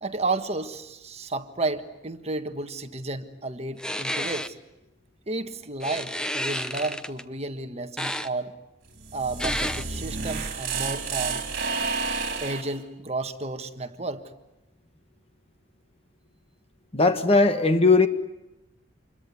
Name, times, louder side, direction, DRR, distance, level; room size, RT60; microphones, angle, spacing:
voice 1, 0.0-4.5 5.3-8.5 9.1-11.4 12.4-14.2, right 3 dB, 35° right, 1.5 m, -32 dB
sound 1, 3.8-4.5 5.8-7.2 8.0-8.3 9.4-9.8, equal, 5° left, 0.9 m, -30 dB
sound 2, 8.9-12.8, right 4 dB, 50° right, 4.0 m, -30 dB
voice 2, 16.9-18.1, left 3 dB, 30° left, 1.5 m, -18 dB
27.0 x 22.0 x 9.6 m
head